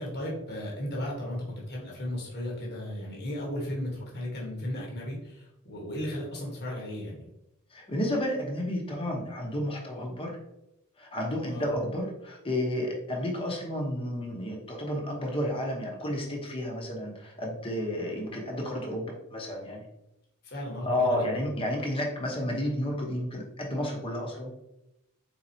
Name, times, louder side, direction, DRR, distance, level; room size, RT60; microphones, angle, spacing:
voice 1, 0.0-7.2 11.5-11.8 20.4-21.3, left 1 dB, 50° left, -3 dB, 1.1 m, -35 dB
voice 2, 7.7-10.4 11.0-19.8 20.9-24.5, left 1 dB, 25° left, -1 dB, 0.8 m, -31 dB
4.3 x 3.8 x 2.7 m, 0.87 s
head